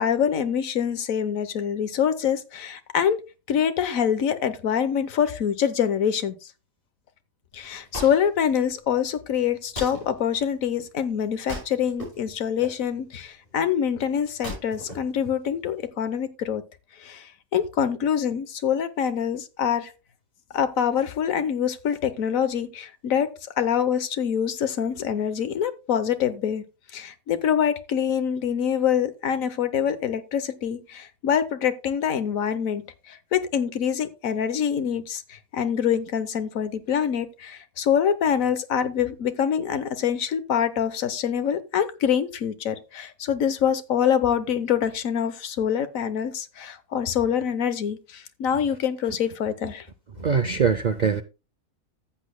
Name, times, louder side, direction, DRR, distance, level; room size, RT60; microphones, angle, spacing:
voice 1, 0.0-3.2 3.5-6.3 7.5-16.6 17.0-19.9 20.5-23.3 23.6-26.6 26.9-49.9, left 8 dB, 80° left, 1.3 m, -25 dB
Wood, 7.5-15.9, left 1 dB, 40° left, 6.1 m, -41 dB
voice 2, 50.2-51.2, right 6 dB, 60° right, 0.4 m, -22 dB
14.0 x 8.3 x 2.2 m
omnidirectional pair, 1.4 m